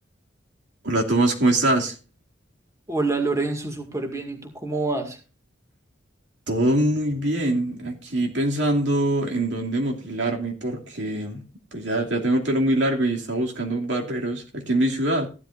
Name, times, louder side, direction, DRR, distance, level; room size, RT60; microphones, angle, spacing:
voice 1, 0.8-1.9 6.5-11.4 11.7-15.3, right 1 dB, 70° right, 2.6 m, -23 dB
voice 2, 2.9-5.2, right 3 dB, 15° right, 2.1 m, -26 dB
15.0 x 12.0 x 2.6 m
head